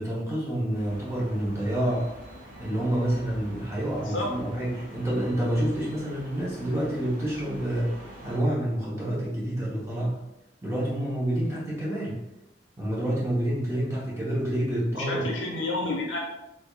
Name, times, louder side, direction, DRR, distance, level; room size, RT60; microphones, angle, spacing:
voice 1, 0.0-2.1 2.6-10.2 10.6-12.2 12.8-15.3, right 1 dB, 15° right, -6 dB, 0.8 m, -28 dB
sound 1, 0.7-8.4, right 1 dB, 50° right, 1.0 m, -45 dB
voice 2, 15.0-16.2, left 2 dB, 80° left, -2 dB, 0.9 m, -29 dB
3.4 x 3.4 x 2.3 m, 0.91 s
head